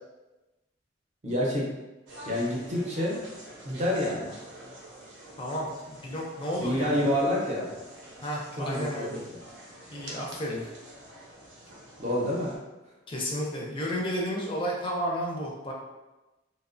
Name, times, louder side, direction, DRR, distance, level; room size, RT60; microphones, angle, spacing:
voice 1, 1.2-1.7 2.3-3.2 3.6-4.3 6.6-7.7 8.5-9.4 12.0-12.5, left 1 dB, 40° right, -3 dB, 0.6 m, -28 dB
sound 1, 2.1-12.6, right 1 dB, 80° right, 0.7 m, -47 dB
voice 2, 5.4-7.0 8.2-9.3 9.9-10.7 13.1-15.7, equal, 25° left, -2 dB, 0.4 m, -32 dB
2.8 x 2.0 x 2.5 m, 1.1 s
head